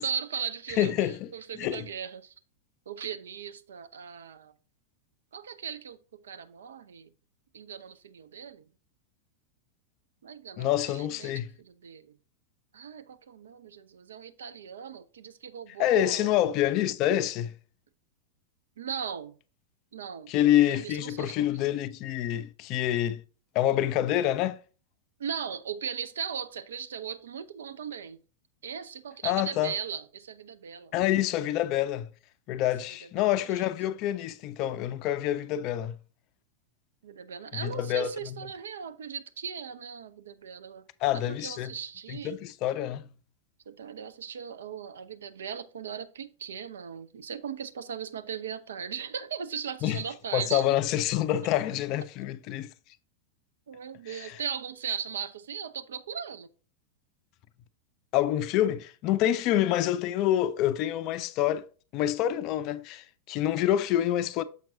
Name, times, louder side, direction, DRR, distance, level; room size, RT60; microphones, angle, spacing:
voice 1, 0.0-2.3 2.9-4.5 5.3-6.0 6.2-7.1 7.5-8.6 10.2-12.1 12.7-16.4 18.8-19.3 19.9-20.3 20.7-21.7 25.2-28.2 28.6-30.9 33.2-33.7 37.0-40.9 41.1-42.3 43.7-50.6 53.7-56.5, right 7 dB, 65° right, 0.5 m, -38 dB
voice 2, 0.8-1.3 1.6-1.8 10.6-11.5 15.8-17.5 20.3-23.2 23.5-24.6 29.2-29.7 30.9-32.1 32.5-35.9 37.6-38.4 41.0-41.7 42.1-43.1 49.8-50.0 50.3-52.7 54.1-54.4 58.1-61.7 61.9-64.4, left 12 dB, 40° left, 0.4 m, -27 dB
7.1 x 5.9 x 2.6 m
figure-of-eight pair, 90°, 0 cm